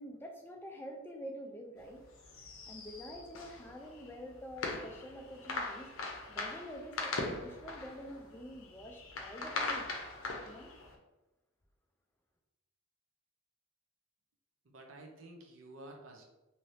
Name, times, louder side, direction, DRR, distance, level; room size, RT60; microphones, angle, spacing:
voice 1, 0.0-2.0 2.7-5.9 6.3-9.9 10.4-10.7, equal, 10° left, 2 dB, 0.3 m, -47 dB
sound 1, 1.8-10.9, left 3 dB, 75° left, 0.6 m, -41 dB
voice 2, 14.6-16.2, right 2 dB, 70° right, 2 dB, 0.6 m, -51 dB
2.8 x 2.6 x 3.2 m, 1.0 s
head